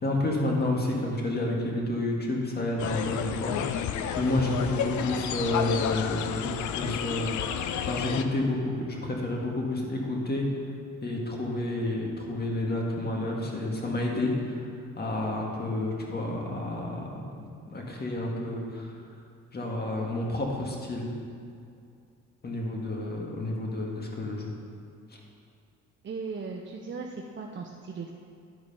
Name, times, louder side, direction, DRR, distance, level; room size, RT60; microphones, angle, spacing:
voice 1, 0.0-10.5 11.0-18.9 19.5-21.1 22.4-24.5, left 2 dB, 30° left, -1 dB, 1.9 m, -30 dB
sound 1, 2.8-8.2, left 8 dB, 75° left, 0.6 m, -31 dB
voice 2, 26.0-28.1, right 4 dB, 40° right, 0 dB, 0.7 m, -37 dB
11.0 x 4.9 x 5.4 m, 2.4 s
cardioid pair, 90°, 30 cm